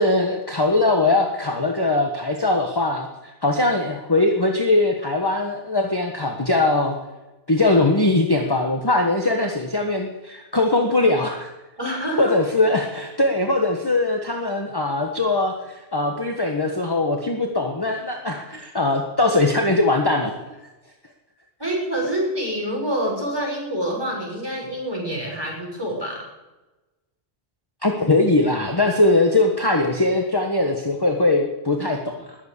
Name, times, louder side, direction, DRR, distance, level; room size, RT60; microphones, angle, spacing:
voice 1, 0.0-7.0 7.5-11.5 12.2-20.4 27.8-32.4, left 2 dB, 20° left, 2 dB, 1.4 m, -21 dB
voice 2, 11.8-12.3 21.6-26.3, right 1 dB, 20° right, -3 dB, 6.7 m, -26 dB
20.5 x 8.2 x 8.3 m, 1.1 s
omnidirectional pair, 1.1 m